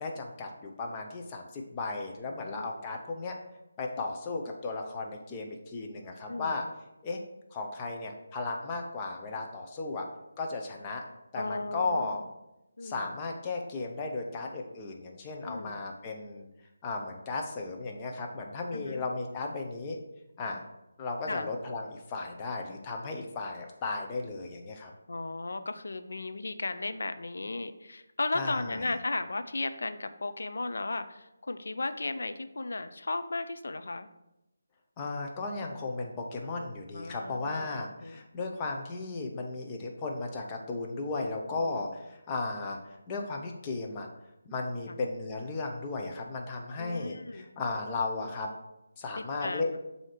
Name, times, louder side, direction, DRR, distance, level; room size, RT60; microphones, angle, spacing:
voice 1, 0.0-3.4 3.8-6.6 7.0-7.2 7.5-10.0 10.4-11.0 11.3-12.2 12.8-16.5 16.8-20.0 20.4-20.6 21.0-24.9 28.3-28.8 35.0-42.8 43.1-44.1 44.5-48.5 49.0-49.7, left 3 dB, 20° left, 1 dB, 0.7 m, -35 dB
voice 2, 2.3-2.7 6.3-6.6 11.4-12.3 12.8-13.1 15.4-15.8 18.7-19.0 21.3-21.5 25.1-34.1 36.9-37.7 38.0-38.2 41.6-41.9 44.9-45.0 46.8-47.5 49.2-49.8, left 2 dB, 70° left, 10 dB, 0.5 m, -35 dB
7.3 x 2.8 x 4.9 m, 0.91 s
figure-of-eight pair, 155°, 0 cm